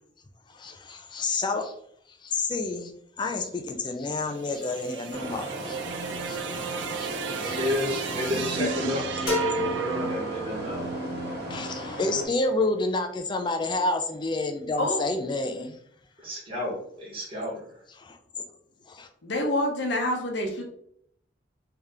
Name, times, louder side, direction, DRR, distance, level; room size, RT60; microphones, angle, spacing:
voice 1, 0.5-1.7 2.2-5.8 6.2-6.5 6.9-7.6 11.5-15.8 18.0-18.2 18.9-19.1, left 3 dB, 25° left, 0.4 m, -29 dB
sound 1, 4.1-12.4, right 5 dB, 80° right, 0.4 m, -35 dB
sound 2, 5.1-12.2, equal, 60° right, 1.4 m, -36 dB
voice 2, 7.4-10.9 16.2-17.6, left 1 dB, 30° right, 1.3 m, -31 dB
sound 3, 9.3-11.0, equal, 55° left, 1.3 m, -30 dB
voice 3, 19.2-20.6, left 1 dB, 75° left, 0.8 m, -27 dB
3.3 x 2.8 x 3.6 m
head